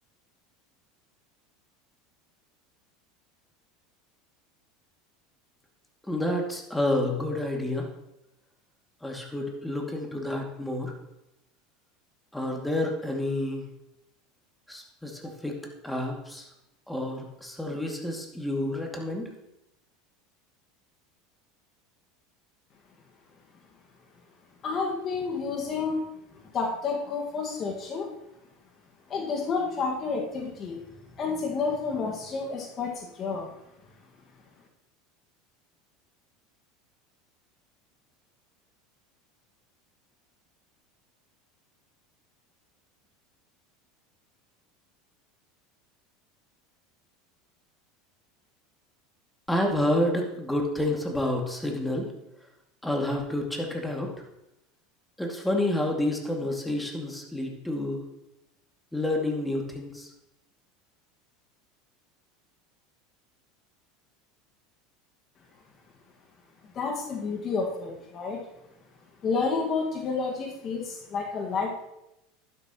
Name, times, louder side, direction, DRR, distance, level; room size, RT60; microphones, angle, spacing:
voice 1, 6.0-7.9 9.0-11.0 12.3-13.7 14.7-16.5 16.9-19.3 49.5-52.1 52.8-54.1 55.2-58.0 58.9-60.1, left 1 dB, 5° left, 1 dB, 2.4 m, -29 dB
voice 2, 24.6-26.1 26.5-28.1 29.1-30.8 31.2-33.5 66.7-68.5 69.2-71.7, left 4 dB, 40° left, 1 dB, 1.8 m, -30 dB
11.5 x 11.0 x 3.0 m, 0.86 s
hypercardioid pair, 80°, 0 cm